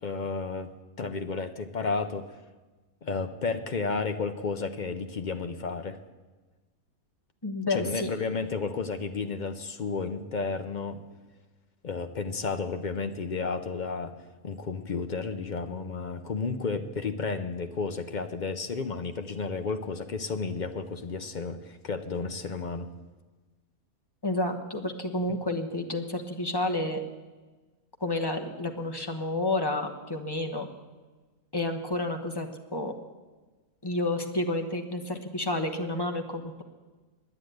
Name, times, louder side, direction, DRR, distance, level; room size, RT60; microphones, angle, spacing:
voice 1, 0.0-0.7 1.0-2.3 3.0-6.0 7.7-11.0 11.8-14.1 14.4-22.9, left 4 dB, 50° left, 8 dB, 0.6 m, -32 dB
voice 2, 7.4-8.1 24.2-27.0 28.0-30.7 31.5-32.9 33.8-36.6, left 2 dB, 20° left, 2 dB, 1.0 m, -30 dB
9.9 x 9.9 x 9.1 m, 1.3 s
omnidirectional pair, 1.5 m